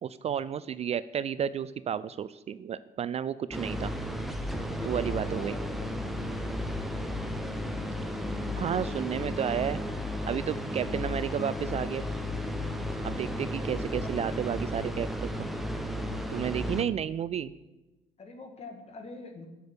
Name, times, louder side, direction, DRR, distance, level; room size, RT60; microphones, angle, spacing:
voice 1, 0.0-3.9 4.9-5.5 8.6-9.8 10.3-12.0 13.0-15.5 16.3-17.5, right 9 dB, 40° right, 16 dB, 0.3 m, -32 dB
sound 1, 3.5-16.8, left 1 dB, ahead, 1.0 m, -34 dB
voice 2, 4.5-6.0 13.4-14.4 18.2-19.5, left 3 dB, 40° left, 5 dB, 2.0 m, -44 dB
8.6 x 6.8 x 8.4 m, 1.1 s
cardioid pair, 110°, 17 cm